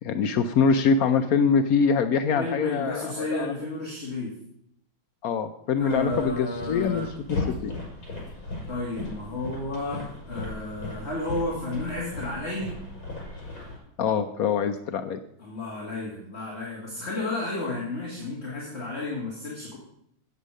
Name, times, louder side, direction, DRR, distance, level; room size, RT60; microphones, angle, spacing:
voice 1, 0.0-3.5 5.2-7.7 14.0-15.2, left 5 dB, 90° left, 8 dB, 0.7 m, -24 dB
voice 2, 2.3-4.3 5.8-7.1 8.7-12.7 15.4-19.8, left 2 dB, 30° left, -4 dB, 2.4 m, -32 dB
sound 1, 5.8-13.8, left 2 dB, 75° left, 6.1 m, -37 dB
8.6 x 8.2 x 6.3 m, 0.72 s
omnidirectional pair, 2.2 m